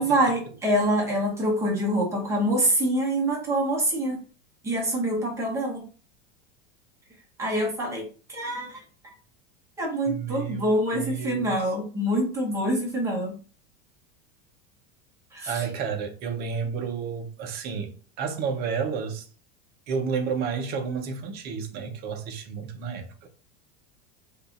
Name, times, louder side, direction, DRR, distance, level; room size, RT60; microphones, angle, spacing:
voice 1, 0.0-4.2 4.6-5.8 7.4-8.8 9.0-9.1 9.8-13.4 15.3-15.6, right 1 dB, 10° right, 0.9 m, -25 dB
voice 2, 10.1-11.6 15.5-19.3 19.9-23.3, right 6 dB, 30° right, 0.5 m, -31 dB
2.7 x 2.4 x 3.7 m
supercardioid pair, 160°, 34 cm